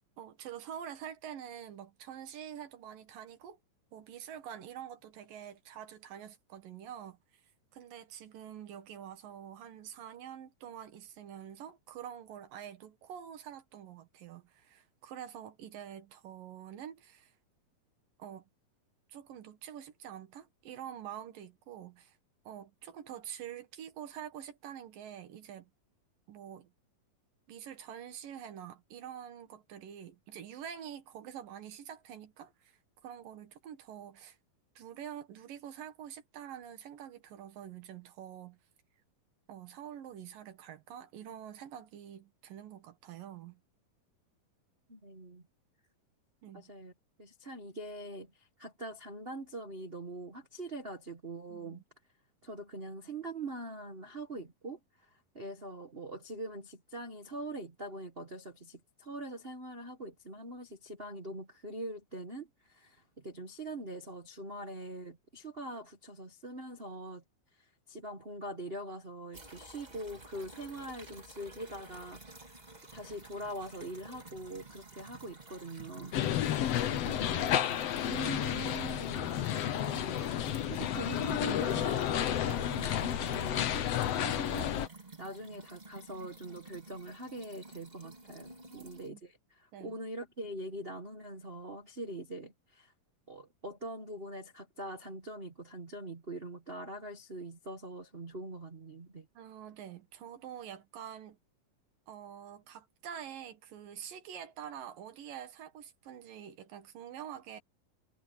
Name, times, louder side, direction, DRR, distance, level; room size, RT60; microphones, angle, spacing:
voice 1, 0.2-3.6 3.9-7.2 7.7-17.3 18.2-18.5 19.1-22.2 22.5-25.7 26.3-26.7 27.5-34.4 34.8-38.6 39.5-43.6 46.4-46.7 51.5-51.8 88.7-89.2 89.7-90.0 99.4-101.4 102.1-107.6, right 9 dB, 80° right, 3.4 m, -46 dB
voice 2, 44.9-45.4 46.5-46.9 47.2-51.8 52.4-67.2 67.6-72.6 72.9-80.3 80.7-84.7 85.2-92.9 93.3-99.3, right 1 dB, 60° right, 0.6 m, -43 dB
sound 1, 69.3-89.1, right 3 dB, 15° right, 1.7 m, -51 dB
sound 2, 76.1-84.9, left 11 dB, 65° left, 1.8 m, -31 dB
omnidirectional pair, 3.9 m